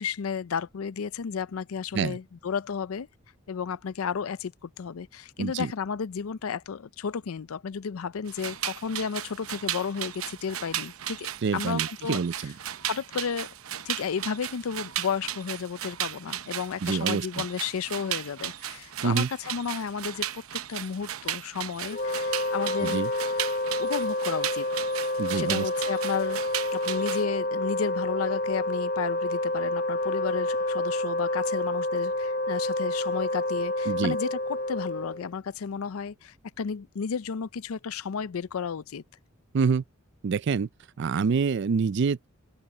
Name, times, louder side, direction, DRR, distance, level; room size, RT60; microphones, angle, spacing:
voice 1, 0.0-3.1 3.5-12.4 12.8-13.5 13.9-23.0 23.8-24.7 25.3-26.4 26.7-39.0, left 6 dB, 85° left, 0.5 m, -33 dB
voice 2, 5.4-5.7 11.4-12.5 16.8-17.4 19.0-19.3 22.8-23.1 25.2-25.7 33.9-34.2 39.5-39.8 40.2-40.7 41.0-42.3, right 5 dB, 55° right, 0.4 m, -26 dB
sound 1, 8.3-27.2, right 11 dB, 85° right, 0.8 m, -35 dB
Wind instrument woodwind instrument, 21.9-35.3, left 1 dB, 45° left, 1.0 m, -29 dB
head